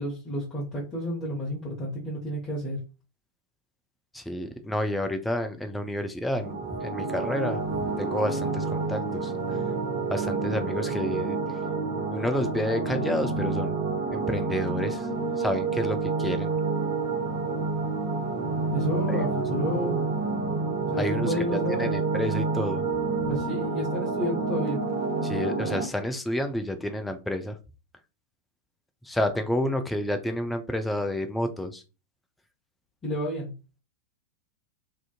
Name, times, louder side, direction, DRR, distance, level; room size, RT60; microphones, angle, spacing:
voice 1, 0.0-2.8 18.7-20.0 20.8-21.9 23.2-24.8 33.0-33.5, equal, 25° left, -6 dB, 0.9 m, -31 dB
voice 2, 4.1-9.3 10.1-11.4 12.1-15.1 15.4-16.6 19.1-19.2 21.0-22.9 25.2-27.6 29.0-31.8, left 1 dB, 5° left, 6 dB, 0.4 m, -30 dB
sound 1, 6.4-25.8, right 4 dB, 50° right, 0.7 m, -29 dB
2.5 x 2.4 x 2.4 m, 0.30 s
figure-of-eight pair, 90°, 0 cm